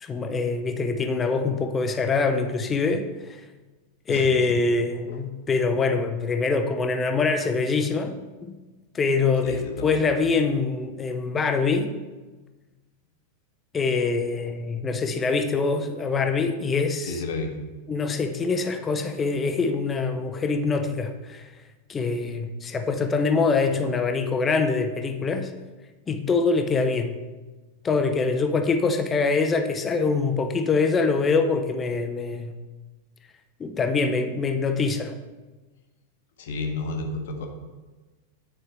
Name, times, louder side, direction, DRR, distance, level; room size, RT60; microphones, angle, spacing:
voice 1, 0.0-3.1 4.1-8.6 8.9-11.9 13.7-17.2 17.9-21.4 21.9-25.5 26.1-27.1 27.8-32.5 33.6-35.1, left 4 dB, 20° left, 7 dB, 0.6 m, -24 dB
voice 2, 4.1-4.6 5.1-5.2 9.4-10.0 17.1-17.5 36.4-37.5, left 3 dB, 55° left, 3 dB, 1.0 m, -31 dB
9.3 x 4.4 x 4.4 m, 1.2 s
figure-of-eight pair, 90°, 0 cm